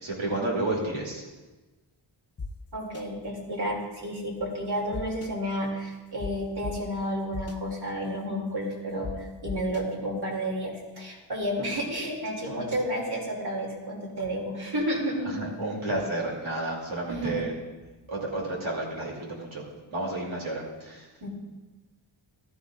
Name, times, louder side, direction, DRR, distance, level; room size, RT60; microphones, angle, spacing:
voice 1, 0.0-1.2 8.9-9.0 15.2-17.5 18.1-19.6 19.9-21.1, right 2 dB, 85° right, -2 dB, 2.6 m, -31 dB
sound 1, 2.4-2.5 2.9-3.0 4.9-5.3 6.2-6.3 6.6-6.7 7.3-7.6 9.0-9.1 9.5-9.8, left 4 dB, 30° left, 0.7 m, -35 dB
voice 2, 2.7-15.4 17.1-17.4 21.2-21.3, equal, 55° right, -1 dB, 2.6 m, -31 dB
14.5 x 12.0 x 2.4 m, 1.2 s
wide cardioid pair, 95°, 47 cm